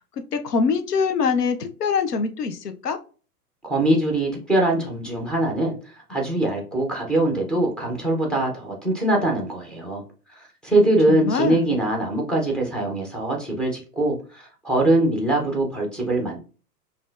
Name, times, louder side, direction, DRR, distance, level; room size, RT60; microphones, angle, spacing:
voice 1, 0.3-3.0 11.1-11.7, left 5 dB, 85° left, 7 dB, 0.8 m, -24 dB
voice 2, 3.6-10.0 10.3-16.4, right 1 dB, ahead, 1 dB, 0.4 m, -22 dB
5.3 x 2.6 x 2.4 m, 0.37 s
hypercardioid pair, 110°, 46 cm